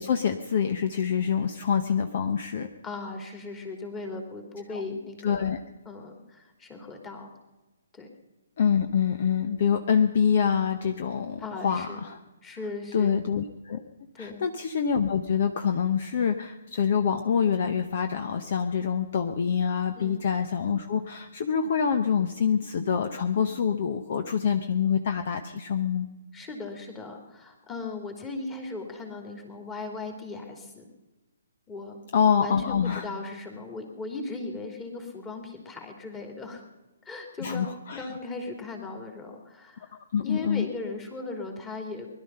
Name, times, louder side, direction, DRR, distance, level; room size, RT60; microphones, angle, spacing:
voice 1, 0.0-2.7 4.7-4.8 5.2-5.6 8.6-12.2 12.9-13.8 14.2-26.1 32.1-33.1 37.4-38.1 40.1-40.7, left 7 dB, 45° left, 7 dB, 0.9 m, -26 dB
voice 2, 2.8-5.5 5.8-7.3 7.9-8.1 11.4-12.0 12.4-13.2 14.2-14.4 19.9-20.2 26.3-30.9 31.7-32.0 32.4-36.6 37.0-37.7 37.9-42.1, left 3 dB, 15° left, 3 dB, 2.8 m, -38 dB
20.5 x 12.0 x 5.6 m, 1.1 s
figure-of-eight pair, 130°, 0 cm